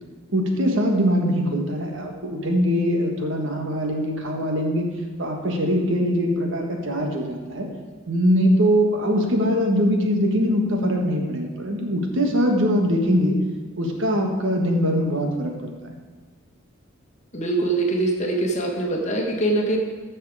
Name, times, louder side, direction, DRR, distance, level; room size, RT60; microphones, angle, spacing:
voice 1, 0.3-4.9 5.2-7.7 8.1-13.4 13.8-15.9, equal, 65° right, 2 dB, 1.5 m, -22 dB
voice 2, 17.3-19.8, right 2 dB, 35° left, 1 dB, 1.5 m, -23 dB
13.5 x 6.5 x 4.8 m, 1.4 s
head